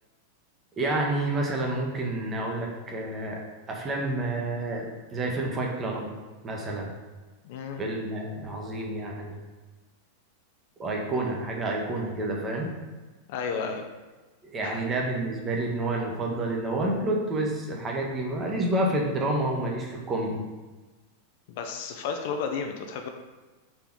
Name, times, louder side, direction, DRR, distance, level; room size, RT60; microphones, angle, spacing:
voice 1, 0.8-3.4 3.7-6.1 6.4-6.9 7.8-9.4 10.8-12.7 14.5-20.4, right 2 dB, 20° right, -1 dB, 0.8 m, -29 dB
voice 2, 7.4-7.8 13.3-13.8 14.6-14.8 21.5-23.1, left 5 dB, 50° left, 4 dB, 0.4 m, -32 dB
4.1 x 3.3 x 3.6 m, 1.2 s
figure-of-eight pair, 90°, 0 cm